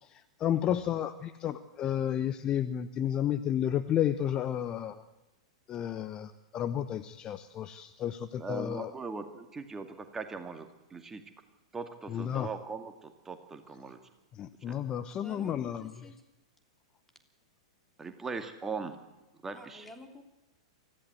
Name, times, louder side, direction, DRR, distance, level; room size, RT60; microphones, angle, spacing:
voice 1, 0.0-5.0 5.7-8.9 12.1-12.5 14.3-16.1, left 10 dB, 25° left, 12 dB, 0.9 m, -32 dB
voice 2, 8.4-11.2 11.7-14.0 18.0-19.0 19.4-19.9, right 4 dB, 15° right, 7 dB, 2.2 m, -40 dB
voice 3, 15.2-16.1 19.5-20.2, left 2 dB, 5° left, 4 dB, 3.2 m, -50 dB
24.5 x 15.5 x 8.0 m, 1.0 s
figure-of-eight pair, 100°, 3 cm